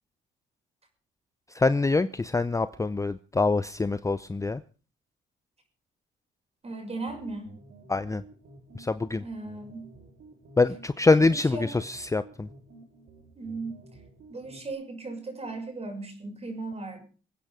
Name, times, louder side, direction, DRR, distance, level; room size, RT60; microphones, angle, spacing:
voice 1, 1.5-4.6 7.9-8.2 8.8-9.2 10.6-12.5, left 3 dB, 15° left, 14 dB, 0.6 m, -25 dB
voice 2, 6.6-7.5 9.2-9.9 11.2-11.7 13.4-13.8 14.3-17.0, right 3 dB, 30° right, 4 dB, 6.3 m, -37 dB
sound 1, 6.7-14.7, right 2 dB, 65° right, 4.3 m, -52 dB
25.0 x 9.0 x 5.0 m, 0.38 s
cardioid pair, 90°, 20 cm